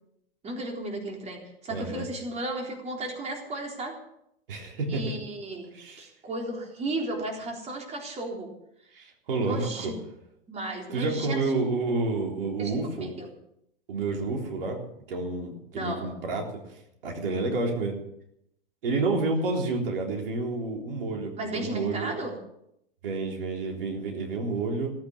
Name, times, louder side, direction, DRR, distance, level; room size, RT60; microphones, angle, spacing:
voice 1, 0.4-4.0 4.9-5.7 6.0-8.5 9.4-9.9 10.5-11.5 12.6-13.3 15.7-16.1 21.4-22.3, right 2 dB, 20° right, 1 dB, 3.8 m, -34 dB
voice 2, 1.7-2.0 4.5-5.2 5.7-6.1 8.9-9.9 10.9-13.2 13.9-18.0 18.8-22.2 23.0-24.9, right 3 dB, 65° right, 1 dB, 3.8 m, -30 dB
17.5 x 9.3 x 7.2 m, 0.78 s
hypercardioid pair, 100°, 30 cm